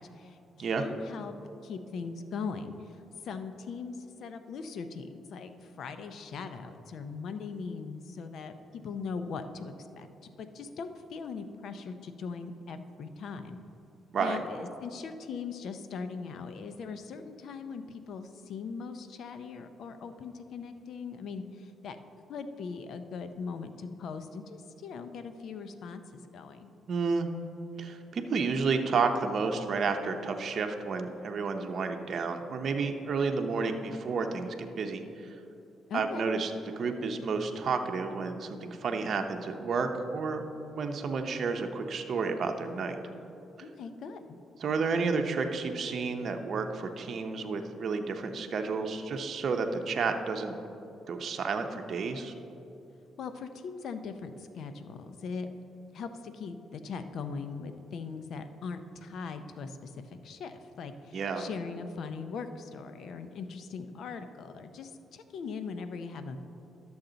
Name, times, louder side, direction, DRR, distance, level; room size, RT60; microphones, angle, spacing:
voice 1, 0.0-1.3 1.6-3.0 3.2-10.1 10.4-13.6 14.2-22.0 22.3-26.7 35.9-36.3 43.6-44.4 53.2-55.5 55.9-66.4, left 5 dB, 65° left, 9 dB, 0.6 m, -40 dB
voice 2, 26.9-27.3 27.8-35.0 35.9-36.5 36.8-40.4 40.7-43.0 44.6-50.5 51.1-52.3 61.1-61.5, right 4 dB, 55° right, 4 dB, 0.7 m, -31 dB
11.5 x 7.1 x 3.9 m, 2.8 s
cardioid pair, 90°, 0 cm